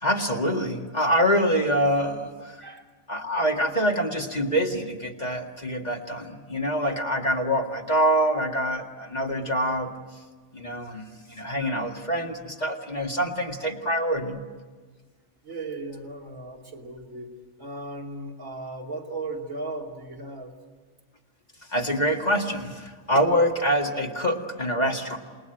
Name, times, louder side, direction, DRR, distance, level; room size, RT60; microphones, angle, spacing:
voice 1, 0.0-2.6 3.1-9.9 10.5-14.4 21.7-25.2, equal, 30° left, 1 dB, 2.0 m, -25 dB
voice 2, 2.6-2.9 6.8-7.0 12.3-12.5 15.4-17.3 17.6-20.5, right 2 dB, 70° right, 0 dB, 3.3 m, -37 dB
28.5 x 21.0 x 9.1 m, 1.4 s
omnidirectional pair, 1.4 m